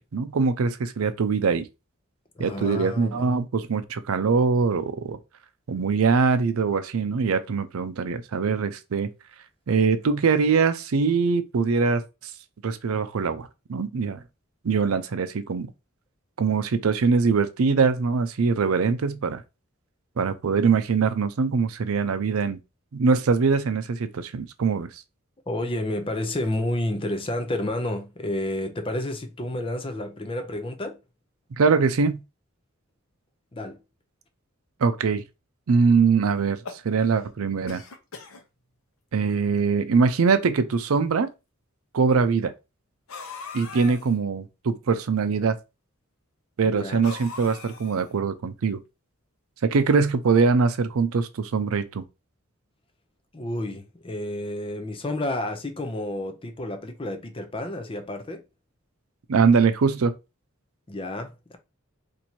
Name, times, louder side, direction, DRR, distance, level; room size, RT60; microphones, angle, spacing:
voice 1, 0.1-1.7 2.4-5.2 5.7-9.1 9.7-12.3 12.6-14.2 14.6-15.7 16.4-19.4 20.2-22.6 22.9-24.9 31.5-32.2 34.8-35.2 35.7-36.6 36.8-37.8 39.1-41.3 41.9-42.5 43.5-45.6 46.6-48.8 49.6-52.0 59.3-60.1, right 5 dB, 90° right, 0.5 m, -22 dB
voice 2, 2.4-3.3 25.5-31.0 33.5-33.8 46.6-47.0 53.3-58.4 60.9-61.6, left 1 dB, 25° left, 0.6 m, -30 dB
sound 1, 36.4-37.3 37.7-38.4 39.2-39.3 39.6-39.7 40.6-40.7 43.1-44.1 47.0-48.2, left 5 dB, 80° left, 0.8 m, -40 dB
2.8 x 2.6 x 4.3 m
head